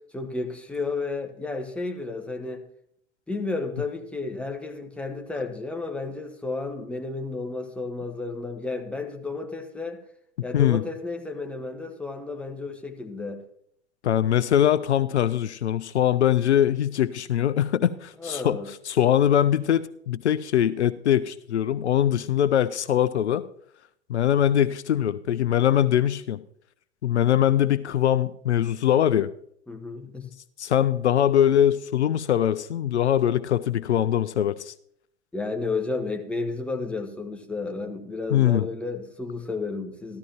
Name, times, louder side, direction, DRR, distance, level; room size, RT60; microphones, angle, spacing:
voice 1, 0.1-2.6 3.3-10.0 10.4-13.4 18.2-18.7 29.7-30.3 35.3-40.2, left 3 dB, 5° left, 4 dB, 1.3 m, -32 dB
voice 2, 14.0-23.4 24.1-26.4 27.0-29.3 30.6-34.7 38.3-38.7, left 10 dB, 75° left, 16 dB, 0.5 m, -22 dB
14.0 x 13.0 x 2.9 m, 0.69 s
figure-of-eight pair, 85°, 35 cm